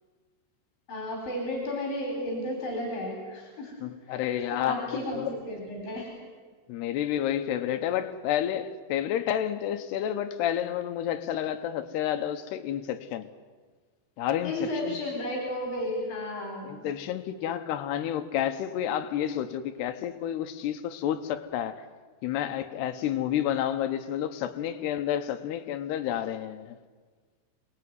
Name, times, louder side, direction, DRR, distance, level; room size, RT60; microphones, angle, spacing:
voice 1, 0.9-3.8 4.1-4.2 4.6-6.1 14.4-16.8, left 1 dB, 50° left, 5.1 m, -33 dB
voice 2, 3.8-5.4 6.7-13.3 14.2-15.0 16.6-21.9 22.2-26.8, left 10 dB, 75° left, 2.6 m, -30 dB
27.0 x 20.0 x 9.5 m
omnidirectional pair, 5.7 m